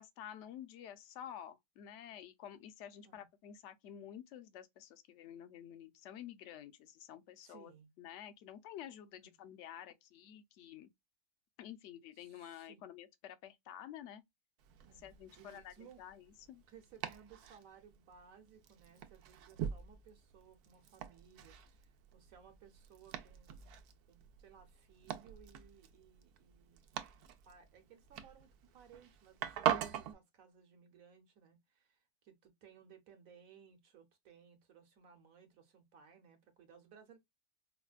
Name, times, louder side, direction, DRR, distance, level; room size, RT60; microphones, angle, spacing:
voice 1, 0.0-7.7 8.0-10.9 11.6-14.2 15.0-16.6, left 10 dB, 65° left, 0.8 m, -50 dB
voice 2, 7.4-7.9 9.2-9.4 12.2-12.9 14.8-16.0 16.7-23.8 24.1-26.8 27.4-37.2, right 7 dB, 65° right, 1.3 m, -61 dB
Domestic sounds home sounds, 14.6-30.1, right 10 dB, 85° right, 1.1 m, -43 dB
4.9 x 2.1 x 2.3 m
omnidirectional pair, 1.6 m